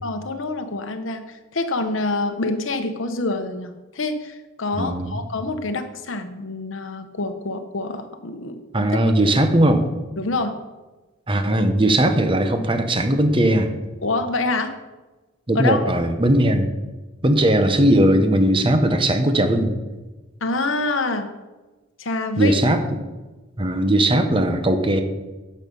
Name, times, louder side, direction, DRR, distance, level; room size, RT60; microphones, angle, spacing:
voice 1, 0.0-8.6 9.0-9.1 10.2-10.5 14.0-14.7 15.5-15.9 20.4-21.3 22.0-22.6, left 2 dB, 70° left, 7 dB, 1.0 m, -26 dB
voice 2, 4.8-5.2 8.7-9.9 11.3-13.7 15.5-16.7 17.2-19.7 22.4-22.8 23.6-25.0, right 1 dB, 25° right, 7 dB, 1.0 m, -18 dB
12.5 x 6.6 x 5.4 m, 1.2 s
head